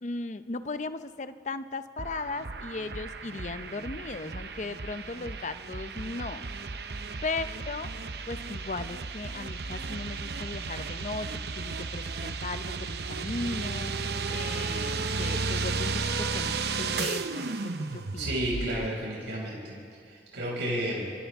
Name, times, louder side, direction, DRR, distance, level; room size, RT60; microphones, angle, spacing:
voice 1, 0.0-6.5 7.2-7.9 8.3-13.9 14.3-18.4, left 3 dB, 40° left, 11 dB, 0.6 m, -37 dB
sound 1, 2.0-18.9, right 4 dB, 60° right, 0.8 m, -34 dB
voice 2, 18.2-21.1, right 1 dB, 80° right, -4 dB, 5.7 m, -32 dB
30.0 x 25.0 x 3.6 m, 2.3 s
head